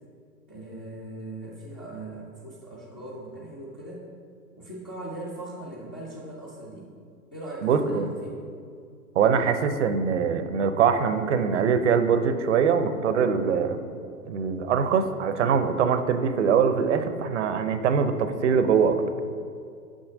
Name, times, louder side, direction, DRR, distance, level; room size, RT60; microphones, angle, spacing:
voice 1, 0.5-4.0 4.6-6.9 7.3-8.4, right 1 dB, 15° left, -4 dB, 0.3 m, -39 dB
voice 2, 7.6-8.1 9.2-13.8 14.2-19.0, right 6 dB, 50° right, 9 dB, 0.6 m, -23 dB
6.3 x 5.8 x 4.9 m, 2.3 s
hypercardioid pair, 125°, 47 cm